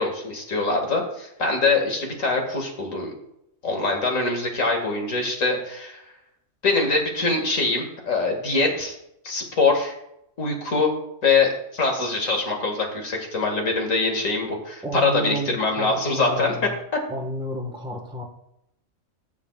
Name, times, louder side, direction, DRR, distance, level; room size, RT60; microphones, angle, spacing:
voice 1, 0.0-3.1 3.6-6.0 6.6-9.0 9.2-9.9 10.4-10.9 11.2-16.5 16.9-17.0, left 3 dB, 70° left, 2 dB, 2.4 m, -23 dB
voice 2, 14.8-16.8 17.1-18.2, right 1 dB, 5° right, 1 dB, 1.3 m, -31 dB
21.0 x 7.3 x 2.4 m, 0.80 s
omnidirectional pair, 1.4 m